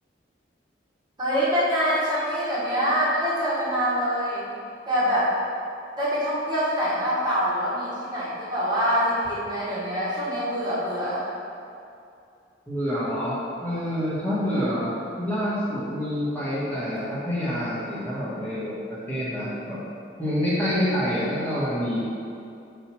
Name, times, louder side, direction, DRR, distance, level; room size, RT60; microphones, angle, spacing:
voice 1, 1.2-4.5 4.9-5.3 6.0-11.3, equal, 25° right, -9 dB, 1.5 m, -25 dB
voice 2, 12.7-19.8 20.2-22.0, equal, 10° left, -10 dB, 1.6 m, -27 dB
4.9 x 4.6 x 6.0 m, 2.5 s
head